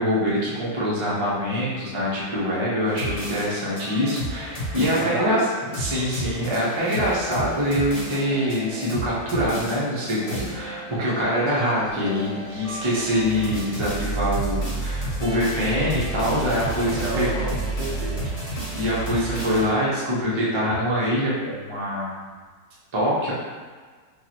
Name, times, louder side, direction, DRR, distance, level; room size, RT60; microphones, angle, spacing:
voice 1, 0.0-5.4 5.7-17.3 18.7-22.2 22.9-23.3, equal, 30° right, -7 dB, 0.5 m, -24 dB
sound 1, 2.8-19.7, right 1 dB, 25° left, 0.9 m, -32 dB
voice 2, 5.0-5.4 17.0-18.4, right 2 dB, 85° right, -2 dB, 1.4 m, -30 dB
4.7 x 2.3 x 3.0 m, 1.5 s
omnidirectional pair, 1.9 m